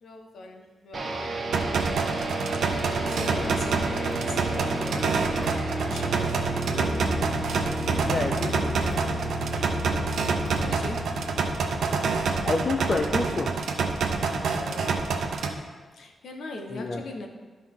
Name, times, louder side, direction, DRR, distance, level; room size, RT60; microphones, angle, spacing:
voice 1, 0.0-1.4 2.6-6.5 10.4-11.3 14.2-15.2 15.9-17.3, left 2 dB, 70° left, 3 dB, 1.1 m, -41 dB
sound 1, 0.9-13.1, right 1 dB, 40° right, 1.3 m, -32 dB
sound 2, 1.5-15.5, right 4 dB, 90° right, 0.8 m, -27 dB
sound 3, 4.1-4.4 4.8-5.0 5.3-5.5 6.1-6.5 6.8-7.0 7.5-7.9 8.1-8.5 8.8-9.0 9.5-9.9 10.5-10.6, right 2 dB, 20° right, 0.7 m, -42 dB
voice 2, 8.1-8.7 12.4-13.5 16.7-17.0, left 3 dB, 30° left, 3 dB, 0.5 m, -28 dB
13.5 x 5.4 x 3.7 m, 1.4 s
wide cardioid pair, 170°, 0 cm